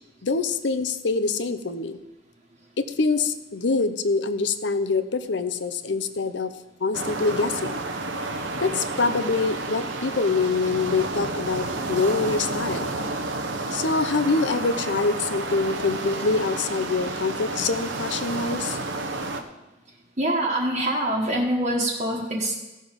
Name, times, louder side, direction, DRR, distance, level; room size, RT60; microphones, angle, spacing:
voice 1, 0.2-2.0 2.8-6.5 6.8-7.7 8.6-12.9 13.7-18.8, left 4 dB, 70° left, 12 dB, 0.7 m, -25 dB
sound 1, 6.9-19.4, right 2 dB, 90° right, 1.0 m, -30 dB
voice 2, 20.2-22.5, right 1 dB, 40° right, -3 dB, 1.4 m, -24 dB
16.0 x 6.6 x 5.2 m, 1.1 s
head